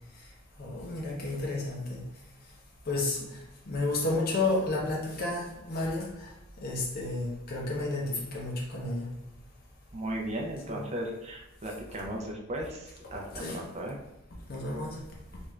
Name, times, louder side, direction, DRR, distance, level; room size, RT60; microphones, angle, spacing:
voice 1, 0.6-2.0 2.9-6.3 6.6-9.1 10.7-10.8 13.0-13.6 14.5-15.0, left 2 dB, 50° left, -2 dB, 0.6 m, -32 dB
voice 2, 9.9-14.0, right 1 dB, 30° right, -1 dB, 0.6 m, -36 dB
3.4 x 2.5 x 3.1 m, 0.91 s
head